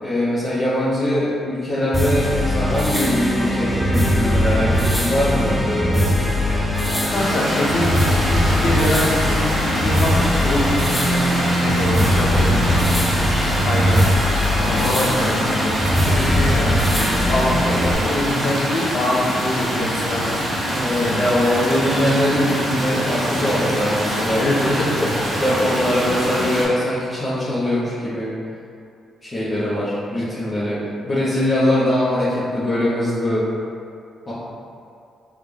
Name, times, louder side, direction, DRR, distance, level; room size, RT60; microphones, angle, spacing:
voice 1, 0.0-6.4 20.7-24.4 25.0-28.3 29.2-33.5 34.3-34.4, left 1 dB, 35° left, -13 dB, 1.0 m, -22 dB
sound 1, 1.9-17.9, equal, 5° left, 0.5 m, -20 dB
voice 2, 6.7-13.1 13.6-14.0 14.6-15.7 16.1-20.4 21.0-21.3 24.4-25.2, left 1 dB, 60° left, -3 dB, 0.6 m, -24 dB
sound 2, 7.1-26.6, equal, 45° right, 1.1 m, -24 dB
3.5 x 3.3 x 2.3 m, 2.5 s
cardioid pair, 80°, 0 cm